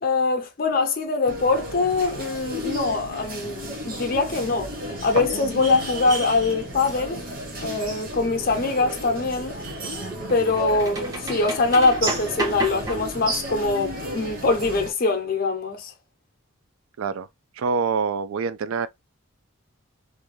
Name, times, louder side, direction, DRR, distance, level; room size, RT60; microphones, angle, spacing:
voice 1, 0.0-4.7 5.0-7.2 7.6-9.5 10.3-15.9, left 3 dB, 45° left, 0.5 m, -23 dB
sound 1, 1.3-14.9, right 1 dB, 40° right, 0.8 m, -33 dB
sound 2, 6.8-6.9 9.3-13.4, right 2 dB, 15° right, 0.4 m, -33 dB
voice 2, 17.0-17.3 17.6-18.9, right 5 dB, 75° right, 0.3 m, -25 dB
2.5 x 2.2 x 3.1 m
head